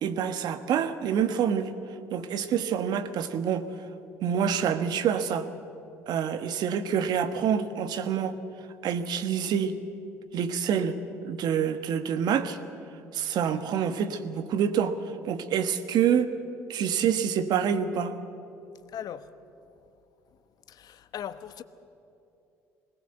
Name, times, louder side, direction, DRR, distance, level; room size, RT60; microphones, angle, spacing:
voice 1, 0.0-1.7 2.1-3.7 4.2-5.5 6.1-8.4 8.8-9.8 10.3-12.6 13.1-15.0 15.3-16.3 16.7-18.2, right 8 dB, 60° right, 1.3 m, -27 dB
voice 2, 18.9-19.3 20.7-21.6, left 9 dB, 55° left, 1.1 m, -38 dB
21.5 x 19.0 x 8.0 m
hypercardioid pair, 65°, 8 cm